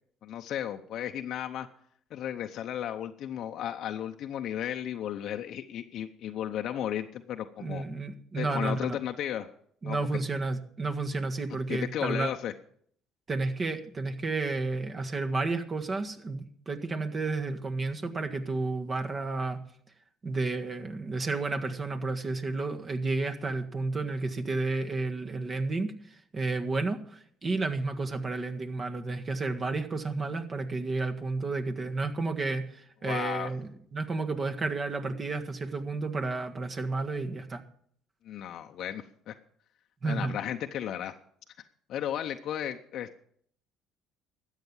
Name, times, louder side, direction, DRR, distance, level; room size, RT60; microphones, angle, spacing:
voice 1, 0.2-1.7 2.1-7.8 8.4-9.5 9.8-10.0 11.7-12.5 33.0-33.5 38.2-39.3 40.1-41.1 41.9-43.2, left 10 dB, 65° left, 5 dB, 0.7 m, -34 dB
voice 2, 7.6-9.0 9.8-12.3 13.3-19.6 20.2-37.6 40.0-40.3, right 3 dB, 40° right, 6 dB, 1.6 m, -31 dB
13.0 x 8.2 x 7.2 m, 0.63 s
hypercardioid pair, 65°, 0 cm